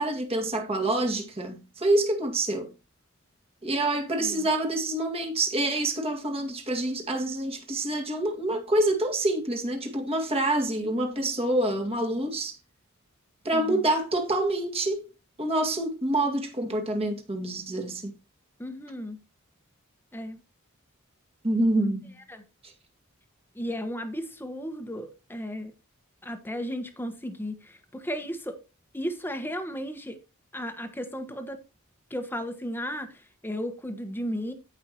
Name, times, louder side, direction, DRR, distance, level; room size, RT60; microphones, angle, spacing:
voice 1, 0.0-2.7 3.6-12.6 13.4-15.1 15.4-18.1 21.4-22.2 22.6-22.7, right 1 dB, 30° right, 2.1 m, -27 dB
voice 2, 13.5-13.9 18.6-19.2 20.1-20.4 22.3-22.4 23.5-25.7 26.2-28.6 28.9-30.2 30.5-31.6 32.1-34.5, equal, 10° left, 1.3 m, -34 dB
17.0 x 5.7 x 3.0 m
head